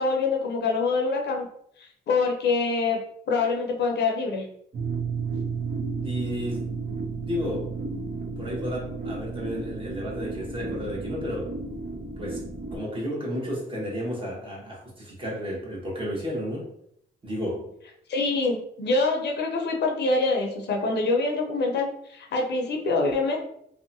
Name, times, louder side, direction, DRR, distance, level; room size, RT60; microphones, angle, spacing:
voice 1, 0.0-1.5 1.8-3.0 3.3-4.5 18.1-23.4, left 3 dB, 60° left, 1 dB, 0.6 m, -25 dB
sound 1, 4.7-12.8, right 4 dB, 50° right, 0.7 m, -32 dB
voice 2, 6.0-7.0 7.2-7.7 8.4-11.5 12.2-16.7 17.2-17.7, equal, 25° right, -3 dB, 1.0 m, -32 dB
2.7 x 2.2 x 2.6 m, 0.71 s
cardioid pair, 90°, 20 cm